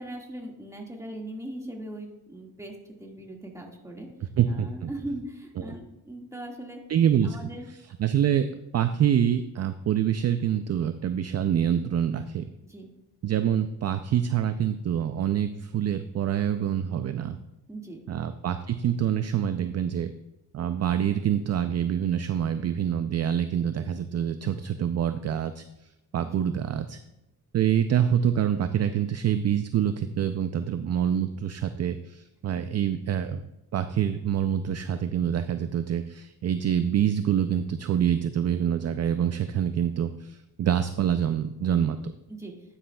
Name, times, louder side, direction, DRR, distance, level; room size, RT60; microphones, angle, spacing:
voice 1, 0.0-4.1 4.5-6.8 7.2-7.7 12.6-12.9 17.7-18.0 26.2-26.5 32.8-32.9 42.3-42.5, right 1 dB, 10° right, 0 dB, 1.8 m, -39 dB
voice 2, 4.4-4.9 5.6-5.7 6.9-7.5 8.0-12.5 13.2-17.4 18.1-20.1 20.5-25.6 26.1-27.0 27.5-33.4 33.7-42.1, right 9 dB, 40° right, 10 dB, 0.5 m, -26 dB
10.0 x 9.8 x 2.3 m, 0.91 s
cardioid pair, 100°, 39 cm